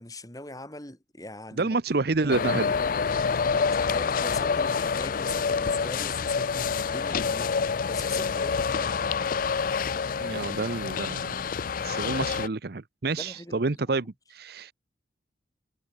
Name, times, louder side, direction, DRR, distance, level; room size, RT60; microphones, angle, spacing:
voice 1, 0.0-1.8 2.1-2.3 3.5-7.5 7.9-9.0 13.2-14.0, left 2 dB, 20° left, 5.5 m, -41 dB
voice 2, 1.6-2.7 10.2-11.4 11.8-14.7, right 3 dB, 55° right, 0.8 m, -29 dB
sound 1, 2.3-12.5, left 5 dB, 50° left, 0.4 m, -27 dB
head